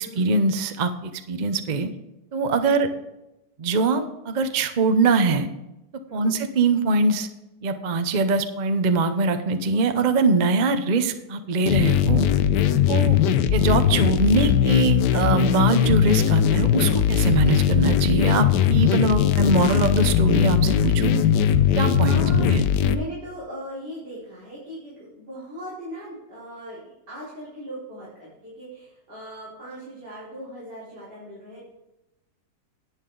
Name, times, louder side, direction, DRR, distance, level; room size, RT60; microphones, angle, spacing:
voice 1, 0.0-1.9 2.3-2.9 3.6-5.5 6.1-7.3 7.6-12.3 12.9-13.2 13.5-21.2 21.7-22.6, right 3 dB, 45° right, 8 dB, 0.5 m, -22 dB
voice 2, 2.6-2.9 6.1-6.4 12.6-13.0 22.0-22.5 22.9-31.6, equal, 65° right, -10 dB, 5.1 m, -38 dB
sound 1, 11.7-22.9, left 9 dB, 75° left, 1.2 m, -20 dB
11.0 x 9.2 x 3.9 m, 0.94 s
omnidirectional pair, 2.0 m